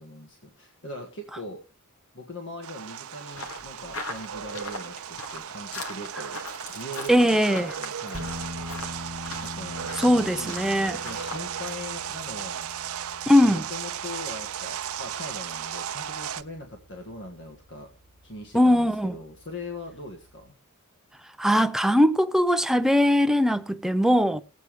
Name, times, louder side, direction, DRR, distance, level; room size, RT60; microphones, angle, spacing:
voice 1, 0.0-1.6 2.1-6.4 6.7-8.3 9.4-12.7 13.4-17.9 18.2-20.5, left 1 dB, 55° left, 1.7 m, -41 dB
sound 1, 2.6-16.4, right 9 dB, 80° right, 0.6 m, -36 dB
sound 2, 3.3-11.5, left 2 dB, 80° left, 2.1 m, -40 dB
voice 2, 7.1-7.7 10.0-11.0 13.3-13.6 18.5-19.1 21.4-24.4, equal, ahead, 0.5 m, -20 dB
sound 3, 8.1-20.5, left 1 dB, 35° right, 1.2 m, -44 dB
20.0 x 8.3 x 3.2 m
head